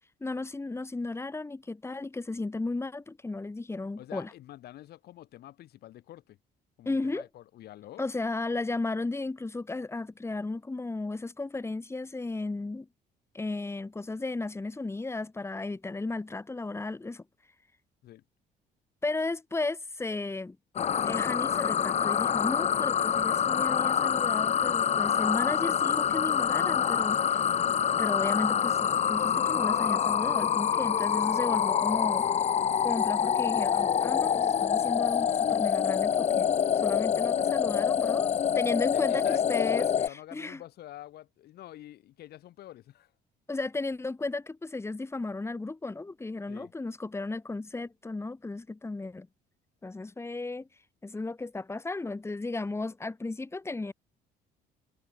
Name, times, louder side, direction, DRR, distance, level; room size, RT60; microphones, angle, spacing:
voice 1, 0.2-4.3 6.9-7.3 8.0-12.9 13.3-17.2 19.0-20.6 21.1-27.5 28.0-32.3 32.8-40.6 43.5-49.3 49.8-50.7 51.0-53.9, left 3 dB, 15° left, 4.2 m, -34 dB
voice 2, 4.0-6.4 6.8-8.1 18.0-18.2 38.9-43.1 46.5-46.7, left 14 dB, 70° left, 6.8 m, -47 dB
sound 1, 20.8-40.1, left 8 dB, 40° left, 1.2 m, -26 dB
cardioid pair, 110°, 17 cm